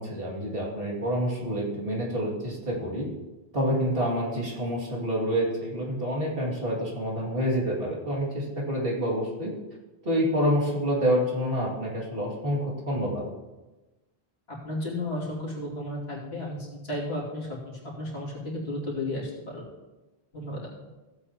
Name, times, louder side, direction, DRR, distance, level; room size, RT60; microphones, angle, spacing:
voice 1, 0.0-3.1 3.5-9.5 10.0-13.3, equal, 60° right, -4 dB, 2.8 m, -27 dB
voice 2, 14.5-19.6 20.3-20.6, left 1 dB, 75° left, -5 dB, 2.9 m, -33 dB
15.5 x 8.3 x 3.0 m, 1.1 s
omnidirectional pair, 1.1 m